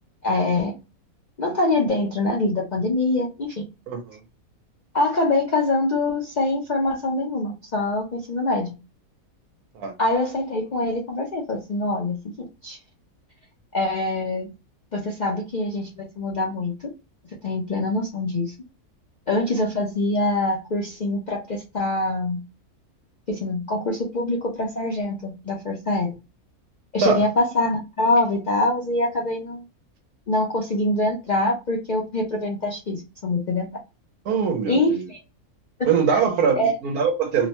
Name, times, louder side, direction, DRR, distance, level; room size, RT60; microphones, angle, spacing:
voice 1, 0.2-0.7 1.4-3.5 4.9-8.7 10.0-12.8 13.7-14.5 14.9-16.7 17.4-18.5 19.3-22.4 23.3-26.1 26.9-29.6 30.3-33.7 34.7-35.2 35.8-36.2 36.5-36.8, left 2 dB, 55° left, 0.5 m, -24 dB
voice 2, 3.9-4.2 9.7-9.9 27.0-27.2 34.3-35.0 35.8-37.5, right 6 dB, 90° right, 1.3 m, -22 dB
3.0 x 2.1 x 2.8 m
omnidirectional pair, 1.5 m